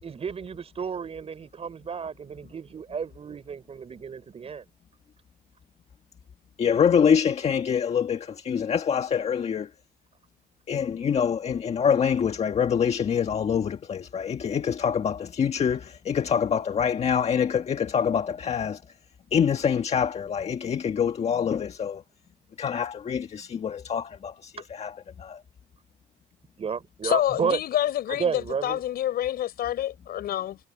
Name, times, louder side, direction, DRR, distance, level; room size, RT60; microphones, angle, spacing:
voice 1, 0.0-4.6 24.6-24.7 26.6-27.6 28.1-28.8, right 6 dB, 35° right, 6.3 m, -32 dB
voice 2, 6.6-9.7 10.7-18.8 19.3-22.0 22.6-24.9 25.2-25.4, left 7 dB, 40° left, 1.6 m, -25 dB
voice 3, 27.0-30.6, left 12 dB, 65° left, 7.0 m, -27 dB
cardioid pair, 110°, 17 cm